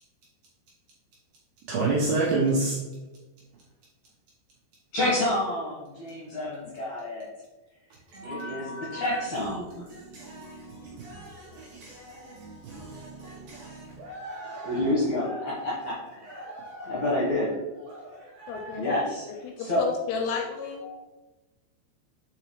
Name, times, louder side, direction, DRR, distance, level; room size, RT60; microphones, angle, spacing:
voice 1, 1.7-2.8 8.1-9.2 9.9-15.9 16.2-17.1 17.8-18.8 20.8-20.9, right 2 dB, 75° right, 2.3 m, -33 dB
voice 2, 4.9-7.3 8.2-9.8 14.7-16.5 16.9-17.5 18.8-19.2 19.6-19.9, left 1 dB, 65° left, 1.9 m, -28 dB
voice 3, 18.5-20.8, left 6 dB, 80° left, 2.5 m, -33 dB
6.7 x 4.8 x 3.1 m
omnidirectional pair, 5.3 m